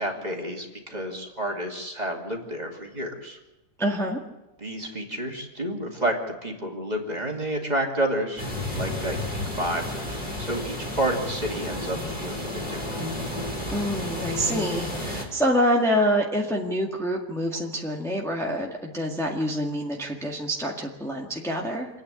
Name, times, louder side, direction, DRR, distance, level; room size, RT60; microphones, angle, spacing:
voice 1, 0.0-3.4 4.6-6.1 6.4-12.9, right 1 dB, 25° right, 0 dB, 2.8 m, -30 dB
voice 2, 3.8-4.2 13.7-22.0, equal, ahead, -1 dB, 1.8 m, -26 dB
sound 1, 8.4-15.2, left 1 dB, 30° left, 4.1 m, -32 dB
27.5 x 9.6 x 9.9 m, 1.0 s
omnidirectional pair, 1.8 m